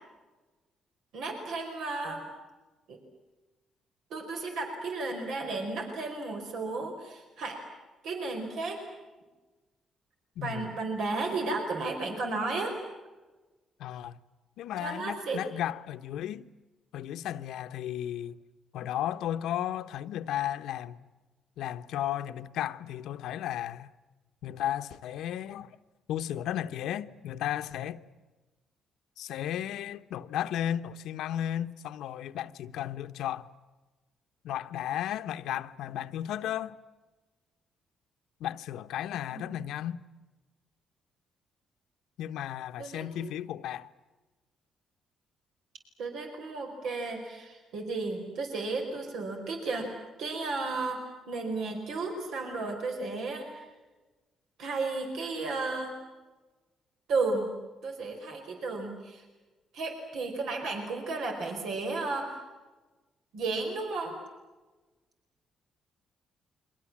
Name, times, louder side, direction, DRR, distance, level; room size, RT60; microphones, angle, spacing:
voice 1, 1.1-2.3 2.9-3.0 4.1-7.6 8.0-8.8 10.4-12.7 14.8-15.4 39.3-39.5 42.8-43.4 46.0-49.9 50.2-51.0 51.3-53.6 54.6-56.0 57.1-57.6 57.8-59.2 59.7-62.4 63.3-64.2, right 3 dB, 80° right, 4.9 m, -33 dB
voice 2, 10.4-10.7 13.8-14.2 14.6-16.5 16.9-18.4 18.7-21.0 21.6-23.9 24.4-25.8 26.1-28.0 29.2-33.5 34.4-36.8 38.4-40.0 42.2-43.9, left 11 dB, 85° left, 1.0 m, -34 dB
30.0 x 24.0 x 7.4 m
cardioid pair, 90°, 0 cm